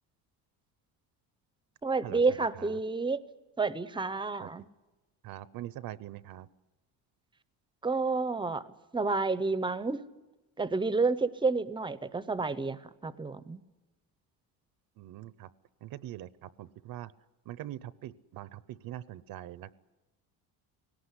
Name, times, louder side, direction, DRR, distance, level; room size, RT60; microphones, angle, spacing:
voice 1, 1.8-3.2 3.6-4.7 7.8-8.6 8.9-10.0 10.6-13.6, right 3 dB, 10° right, 16 dB, 0.6 m, -30 dB
voice 2, 5.2-6.5 15.0-15.5 15.8-17.1 17.5-19.7, right 13 dB, 60° right, 18 dB, 0.7 m, -43 dB
18.0 x 18.0 x 9.8 m, 1.1 s
cardioid pair, 130°, 40 cm